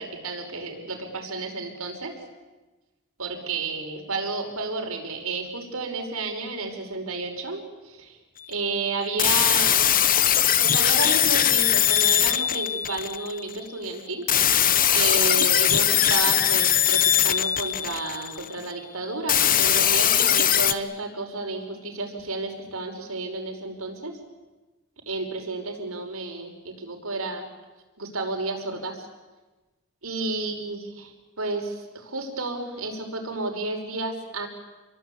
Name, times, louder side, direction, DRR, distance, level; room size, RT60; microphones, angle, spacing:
voice 1, 0.0-2.1 3.2-8.2 8.5-10.0 10.6-14.3 14.9-24.2 25.1-27.5 28.0-29.1 30.0-34.5, right 3 dB, 85° right, 3 dB, 5.4 m, -31 dB
sound 1, 9.2-13.4 14.3-18.5 19.3-20.7, left 10 dB, 40° left, 1.0 m, -21 dB
29.0 x 23.0 x 8.6 m, 1.2 s
head